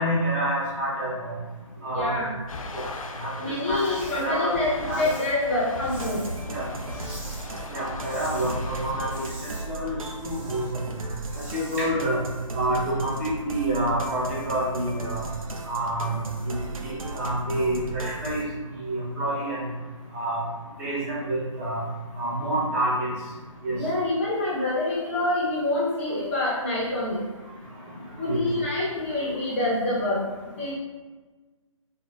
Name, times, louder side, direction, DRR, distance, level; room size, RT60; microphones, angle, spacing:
voice 1, 0.0-1.3 1.8-2.1 2.7-2.9 3.2-4.5 4.9-5.1 6.5-6.7 7.7-9.3 9.7-10.8 11.5-12.2 12.5-15.2 15.7-16.2 16.5-18.4 18.8-19.7 20.1-20.4 20.8-21.8 22.2-23.1 23.6-23.8 28.3-28.4, right 1 dB, 25° right, -6 dB, 0.7 m, -28 dB
voice 2, 1.8-2.3 3.4-4.7 5.0-6.2 23.7-27.3 28.2-30.2 30.6-30.7, left 2 dB, 20° left, -7 dB, 0.5 m, -26 dB
sound 1, 2.5-9.3, left 2 dB, 80° left, 0.4 m, -38 dB
sound 2, 3.7-4.2 4.5-6.5 6.9-7.5 7.8-8.5 8.9-10.7 11.1-11.9, equal, 5° right, 1.4 m, -45 dB
sound 3, 5.9-18.4, right 3 dB, 85° right, 0.4 m, -37 dB
3.7 x 2.0 x 2.3 m, 1.3 s
figure-of-eight pair, 145°, 17 cm